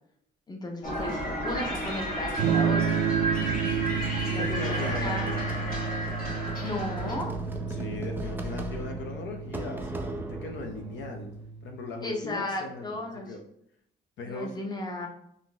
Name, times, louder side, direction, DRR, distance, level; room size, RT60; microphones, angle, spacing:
voice 1, 0.5-3.0 4.2-5.3 6.6-7.3 12.0-13.3 14.2-15.1, left 2 dB, 20° left, 2 dB, 0.7 m, -35 dB
sound 1, 0.8-7.2, right 1 dB, 45° left, 1.2 m, -32 dB
Electric guitar / Strum, 2.4-12.1, right 6 dB, 80° right, 0.4 m, -31 dB
sound 2, 3.3-11.4, right 1 dB, 10° right, 0.4 m, -39 dB
voice 2, 4.3-5.6 7.7-11.3 11.6-13.4 14.2-14.5, left 3 dB, 70° left, 3 dB, 0.5 m, -38 dB
3.7 x 2.6 x 2.2 m, 0.72 s
cardioid pair, 90°, 20 cm